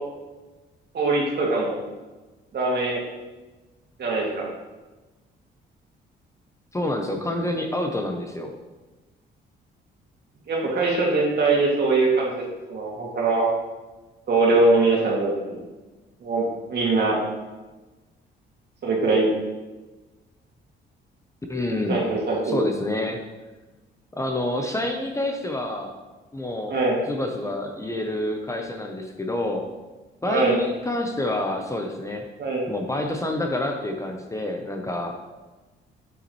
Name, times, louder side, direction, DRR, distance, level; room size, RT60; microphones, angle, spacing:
voice 1, 0.9-1.8 2.5-3.0 4.0-4.5 10.5-12.4 12.7-13.5 14.3-15.6 16.2-17.2 18.8-19.3 21.9-22.6 26.7-27.0 30.3-30.6 32.4-32.6, right 3 dB, 55° right, -3 dB, 2.3 m, -22 dB
voice 2, 6.7-8.5 21.5-22.0 22.4-23.2 24.1-26.0 26.3-26.8 27.1-29.6 30.2-32.2 32.7-35.2, left 1 dB, 15° left, 3 dB, 0.8 m, -28 dB
7.1 x 7.0 x 3.1 m, 1.2 s
cardioid pair, 90°, 20 cm